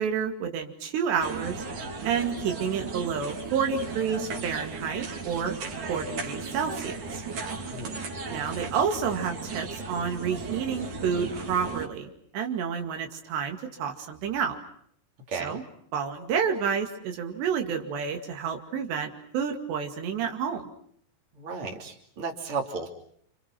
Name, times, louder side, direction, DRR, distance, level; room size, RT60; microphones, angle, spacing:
voice 1, 0.0-1.6 2.0-5.6 5.9-7.2 8.3-14.6 15.4-15.6 15.9-20.7, right 7 dB, 85° right, 4 dB, 4.4 m, -29 dB
sound 1, 1.2-11.9, right 4 dB, 50° right, 4.4 m, -36 dB
voice 2, 15.3-15.6 21.3-22.9, right 4 dB, 35° right, 2 dB, 3.5 m, -34 dB
29.0 x 27.5 x 6.1 m, 0.64 s
omnidirectional pair, 4.8 m